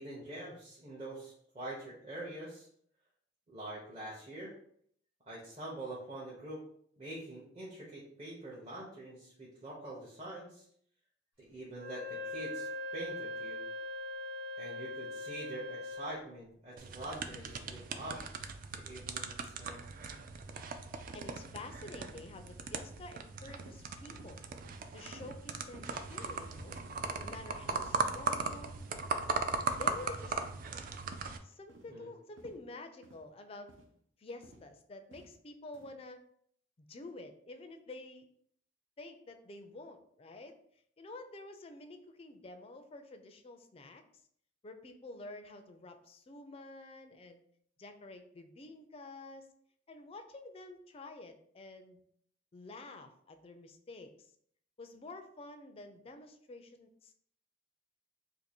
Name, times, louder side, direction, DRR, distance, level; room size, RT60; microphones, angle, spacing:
voice 1, 0.0-2.7 3.5-4.5 5.3-6.6 7.0-10.7 11.4-13.6 14.6-18.2 18.7-19.8 31.9-32.1, right 1 dB, 30° right, -6 dB, 0.7 m, -45 dB
Wind instrument woodwind instrument, 11.7-16.2, left 1 dB, 65° right, 1.1 m, -41 dB
sound 1, 16.8-31.4, right 4 dB, 45° right, 0.3 m, -38 dB
voice 2, 21.1-24.4 24.9-26.8 27.2-28.8 29.8-30.4 31.4-33.7 34.2-36.2 36.9-38.3 39.0-40.6 41.0-44.0 44.6-47.4 47.8-49.5 49.9-52.0 52.5-54.3 54.8-57.1, left 2 dB, 30° left, 7 dB, 0.3 m, -49 dB
sound 2, 23.6-23.8 24.1-24.3 24.6-24.8 25.2-25.3 25.7-25.8 26.2-26.4 26.7-26.9 27.2-27.4 27.8-28.0 28.4-28.6 29.0-29.2 29.7-29.9 30.4-30.6 31.1-31.3 31.7-31.9 32.4-32.6 33.0-33.2 33.7-33.9 34.4-34.7 35.1-35.3 35.7-35.9, right 1 dB, 80° right, 0.7 m, -56 dB
2.6 x 2.5 x 4.2 m, 0.65 s
head